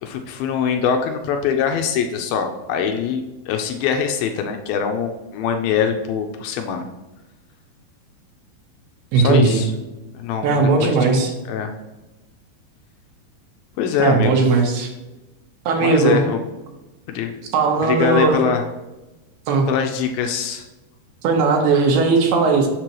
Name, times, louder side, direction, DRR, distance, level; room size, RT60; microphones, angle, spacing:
voice 1, 0.0-6.9 9.1-9.7 10.1-11.2 11.5-11.7 13.8-14.4 15.8-16.4 17.1-17.4 17.8-18.6 19.7-20.6, left 7 dB, 80° left, 5 dB, 2.3 m, -23 dB
voice 2, 9.1-9.6 10.4-11.3 14.0-14.9 15.7-16.2 17.5-18.4 19.5-19.7 21.2-22.7, right 4 dB, 80° right, 1 dB, 3.0 m, -17 dB
6.7 x 6.3 x 3.0 m, 1.1 s
omnidirectional pair, 4.6 m